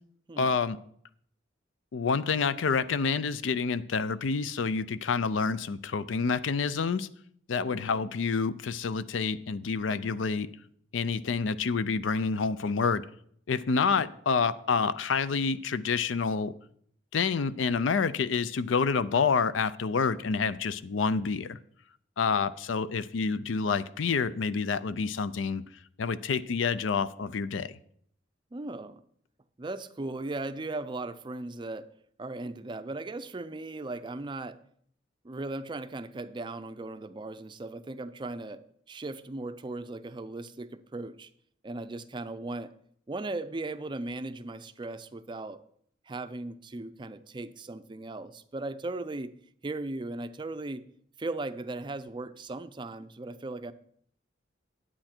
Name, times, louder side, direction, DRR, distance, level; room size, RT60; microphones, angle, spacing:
voice 1, 0.4-0.8 1.9-7.1 7.5-10.5 10.9-13.0 13.5-16.5 17.1-21.6 22.2-25.6 26.0-27.7, left 5 dB, 80° left, 16 dB, 0.5 m, -28 dB
voice 2, 7.7-8.0 13.7-14.1 28.5-29.0 29.6-31.9 32.2-34.6 35.2-41.3 41.6-42.7 43.1-45.6 46.1-49.3 49.6-50.8 51.2-53.7, right 2 dB, 25° right, 11 dB, 0.4 m, -37 dB
10.0 x 8.5 x 4.4 m, 0.64 s
head